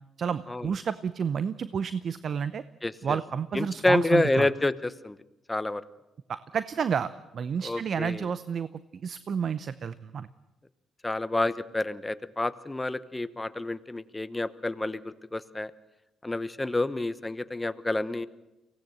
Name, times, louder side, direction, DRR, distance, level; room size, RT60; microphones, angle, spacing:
voice 1, 0.2-2.6 3.0-4.5 6.3-8.7 9.0-10.3, right 7 dB, 55° right, 15 dB, 0.7 m, -30 dB
voice 2, 2.8-3.2 3.5-5.2 5.5-5.8 7.6-8.3 11.0-15.7 16.2-18.3, left 2 dB, 15° left, 14 dB, 1.0 m, -28 dB
23.5 x 17.5 x 7.9 m, 0.97 s
cardioid pair, 90°, 0 cm